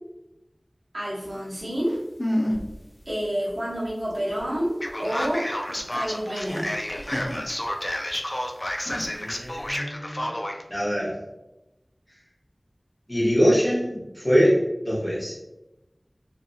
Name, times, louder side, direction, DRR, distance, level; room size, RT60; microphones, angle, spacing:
voice 1, 0.9-2.0 3.0-5.5 5.9-6.7, equal, 70° right, -8 dB, 1.2 m, -28 dB
sound 1, 1.6-1.7 1.8-2.8 3.1-3.2 3.5-8.1 8.7-9.7, equal, 70° left, 0.7 m, -32 dB
Male speech man speaking, 4.8-10.6, left 1 dB, 35° left, 0.4 m, -30 dB
voice 2, 9.2-10.3 10.7-11.2 13.1-15.4, equal, 5° left, -7 dB, 1.3 m, -23 dB
2.6 x 2.4 x 2.7 m, 0.94 s
wide cardioid pair, 45°, 0 cm